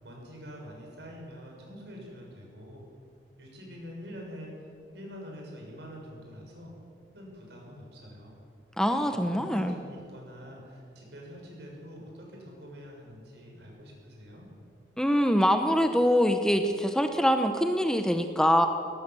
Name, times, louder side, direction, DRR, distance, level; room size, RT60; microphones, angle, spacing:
voice 1, 0.0-2.8 3.4-6.7 7.1-8.3 9.0-14.5, equal, 65° right, -1 dB, 7.0 m, -45 dB
voice 2, 8.8-9.7 15.0-18.7, equal, 5° left, 6 dB, 0.9 m, -24 dB
20.5 x 18.0 x 7.7 m, 2.4 s
head